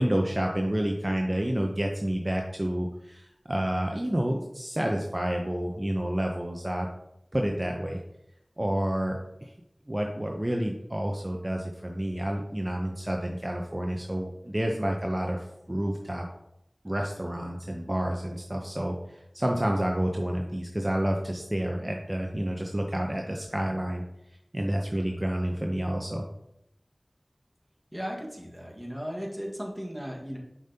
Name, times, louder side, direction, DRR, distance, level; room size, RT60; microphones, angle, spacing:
voice 1, 0.0-6.9 7.3-8.0 8.6-9.5 9.9-16.2 16.8-24.0 24.5-26.3, right 1 dB, 30° right, 1 dB, 0.7 m, -29 dB
voice 2, 27.9-30.4, equal, 5° right, -1 dB, 1.5 m, -36 dB
7.1 x 5.2 x 2.8 m, 0.81 s
wide cardioid pair, 40°, 0 cm